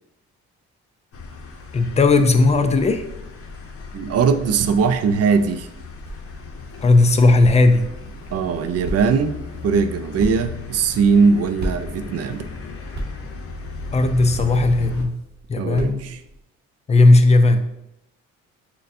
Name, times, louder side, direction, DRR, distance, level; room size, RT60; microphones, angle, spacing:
sound 1, 1.1-15.1, left 4 dB, 50° left, 0.7 m, -36 dB
voice 1, 1.7-3.1 6.8-7.9 13.9-15.2 15.5-16.1 16.9-17.7, left 2 dB, 25° left, 8 dB, 0.4 m, -16 dB
voice 2, 3.9-5.7 8.3-9.4 9.6-12.4 15.6-16.2, right 5 dB, 55° right, 9 dB, 0.4 m, -20 dB
sound 2, 5.5-16.4, right 1 dB, 35° right, 0.9 m, -37 dB
6.4 x 2.2 x 2.6 m, 0.84 s
cardioid pair, 90°, 30 cm